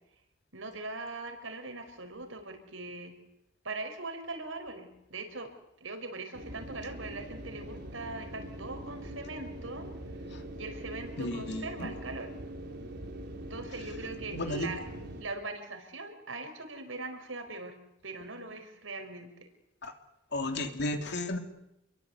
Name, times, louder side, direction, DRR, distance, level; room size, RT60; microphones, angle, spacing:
voice 1, 0.5-3.1 3.6-5.5 5.8-9.9 10.5-12.3 13.5-14.9 15.2-17.8 18.0-19.3, right 3 dB, 85° right, 6 dB, 5.3 m, -41 dB
sound 1, 6.3-15.2, right 1 dB, 60° right, 4.3 m, -43 dB
voice 2, 11.2-12.0 14.3-14.7 19.8-19.9 20.3-21.4, left 2 dB, 60° left, 5 dB, 3.0 m, -33 dB
28.5 x 22.5 x 8.2 m, 0.88 s
head